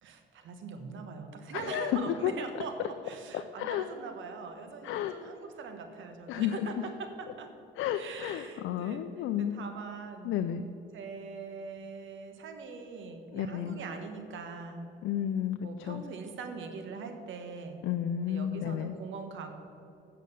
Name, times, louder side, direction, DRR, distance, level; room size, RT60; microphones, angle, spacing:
voice 1, 0.0-7.5 7.9-9.0 9.4-10.3 10.9-14.9 15.6-17.8 18.3-19.5, right 4 dB, 75° right, 6 dB, 1.3 m, -42 dB
voice 2, 1.5-2.3 3.3-3.8 4.8-5.1 6.3-6.7 7.8-9.6 10.2-10.6 13.3-13.8 15.0-16.0 17.8-18.9, left 10 dB, 80° left, 8 dB, 0.5 m, -32 dB
8.6 x 6.6 x 6.6 m, 2.7 s
cardioid pair, 90°, 20 cm